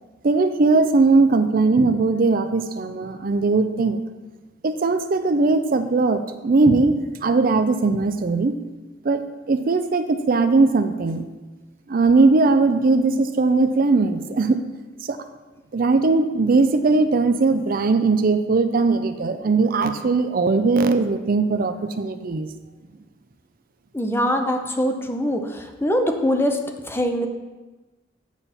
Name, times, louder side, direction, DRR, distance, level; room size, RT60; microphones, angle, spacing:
voice 1, 0.2-4.0 4.6-8.5 9.0-9.2 9.5-11.2 11.9-14.6 15.1-15.2 15.7-22.5, right 3 dB, 50° right, 9 dB, 0.5 m, -19 dB
voice 2, 23.9-26.6 26.9-27.3, equal, 10° left, 5 dB, 0.6 m, -23 dB
8.8 x 7.1 x 4.2 m, 1.2 s
head